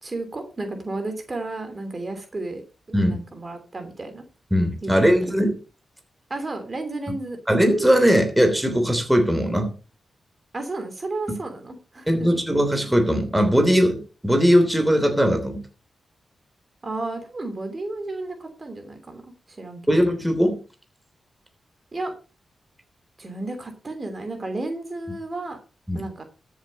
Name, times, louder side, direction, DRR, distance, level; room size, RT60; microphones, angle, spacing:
voice 1, 0.0-2.6 3.1-4.2 4.8-4.9 6.3-7.4 10.5-12.3 16.8-20.0 21.9-22.1 23.2-25.6 25.9-26.2, right 2 dB, 35° right, 6 dB, 3.0 m, -32 dB
voice 2, 4.5-5.5 7.5-9.7 12.1-15.6 19.9-20.6 25.9-26.1, equal, 5° right, 6 dB, 3.3 m, -19 dB
13.5 x 7.3 x 5.4 m, 0.34 s
cardioid pair, 75°, 0 cm